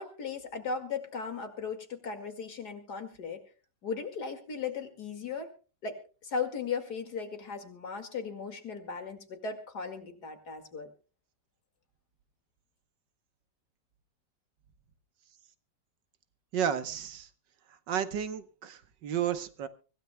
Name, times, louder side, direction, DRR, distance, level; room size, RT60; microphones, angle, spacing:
voice 1, 0.0-3.4 3.8-5.5 5.8-10.9, left 5 dB, 60° left, 6 dB, 2.7 m, -37 dB
voice 2, 16.5-17.3 17.9-19.7, right 9 dB, 75° right, 11 dB, 1.7 m, -32 dB
24.5 x 16.0 x 2.2 m, 0.36 s
omnidirectional pair, 1.9 m